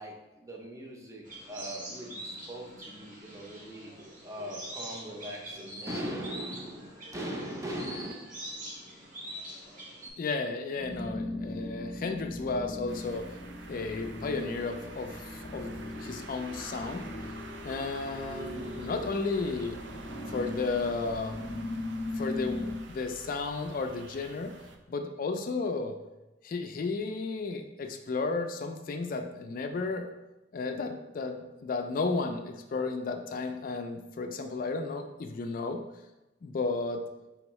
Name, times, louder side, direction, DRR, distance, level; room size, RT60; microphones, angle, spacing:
voice 1, 0.0-3.9 4.2-8.1, right 1 dB, 20° right, 0 dB, 0.6 m, -40 dB
sound 1, 1.2-10.1, right 1 dB, 45° right, 0.9 m, -44 dB
voice 2, 10.2-13.3 13.7-17.0 17.6-19.8 20.3-21.5 22.2-24.5 24.9-26.0 26.4-30.1 30.5-35.8 36.4-37.0, left 3 dB, 50° left, 5 dB, 0.4 m, -33 dB
sound 2, 10.7-22.8, left 1 dB, 30° left, 0.8 m, -39 dB
sound 3, 12.9-24.8, right 3 dB, 85° right, 0.5 m, -48 dB
4.5 x 3.5 x 3.0 m, 1.0 s
head